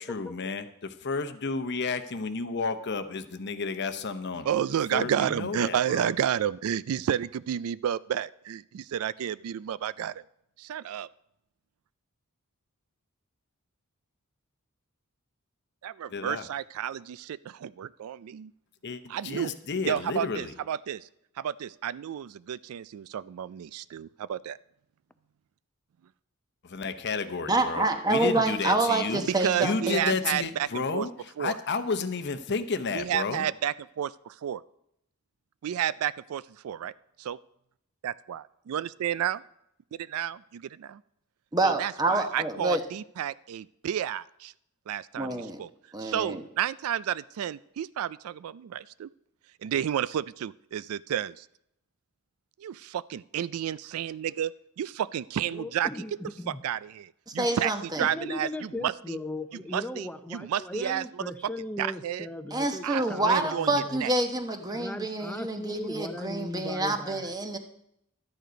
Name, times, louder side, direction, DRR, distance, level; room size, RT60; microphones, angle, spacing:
voice 1, 0.0-4.5 4.9-6.1 16.1-16.5 18.8-20.5 26.6-29.2 29.6-33.5, left 4 dB, 50° left, 10 dB, 0.8 m, -32 dB
voice 2, 4.5-10.2 10.6-11.1 15.8-18.5 19.1-19.5 19.9-21.1 21.4-24.6 29.2-31.1 31.4-31.6 32.9-34.6 35.6-36.9 37.2-37.4 38.0-39.4 39.9-41.0 41.6-44.5 44.9-45.7 46.0-49.1 49.6-51.5 52.6-55.9 56.5-59.2 59.7-61.0 61.8-62.3 62.8-63.7 64.0-64.1, right 9 dB, 75° right, 19 dB, 0.3 m, -31 dB
voice 3, 27.5-30.2 41.5-42.8 45.2-45.6 45.9-46.4 57.4-58.1 62.5-67.6, right 2 dB, 20° right, 6 dB, 1.0 m, -27 dB
voice 4, 55.5-56.6 58.0-64.0 64.7-67.3, left 1 dB, 5° left, 9 dB, 0.6 m, -37 dB
12.5 x 9.3 x 5.1 m, 0.76 s
head